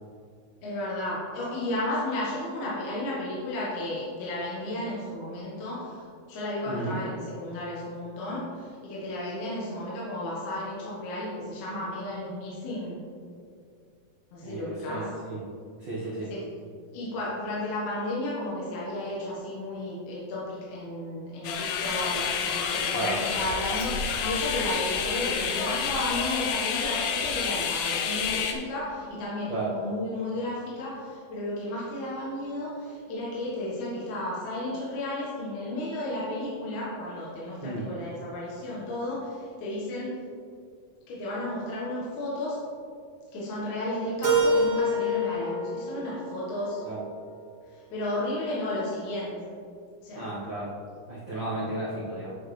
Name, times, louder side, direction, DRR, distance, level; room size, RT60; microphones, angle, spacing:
voice 1, 0.6-13.0 14.3-15.0 16.3-16.4 16.9-40.2 41.1-42.6 43.3-46.8 47.7-49.3 50.0-50.3, left 1 dB, 65° left, -7 dB, 2.5 m, -33 dB
voice 2, 6.7-7.0 14.4-15.4 15.8-16.3 22.9-23.2 29.5-29.7 37.6-37.9 46.8-47.0 50.1-50.7 51.1-52.3, right 2 dB, 90° right, -7 dB, 1.0 m, -33 dB
sound 1, 21.4-28.5, left 6 dB, 80° left, 2.4 m, -29 dB
Keyboard (musical), 44.2-47.1, equal, 60° right, 1.9 m, -27 dB
10.5 x 6.3 x 3.2 m, 2.3 s
omnidirectional pair, 4.1 m